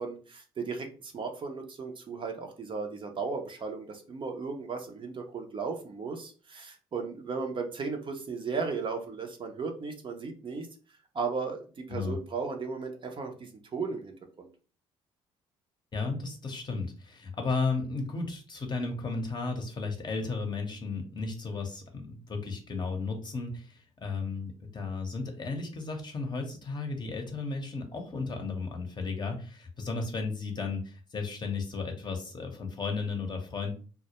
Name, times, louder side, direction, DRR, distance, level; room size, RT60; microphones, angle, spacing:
voice 1, 0.0-10.7 11.1-14.5, right 4 dB, 40° right, 4 dB, 0.6 m, -36 dB
voice 2, 15.9-33.7, left 4 dB, 35° left, 3 dB, 0.7 m, -34 dB
2.1 x 2.0 x 2.8 m, 0.38 s
supercardioid pair, 65°, 13 cm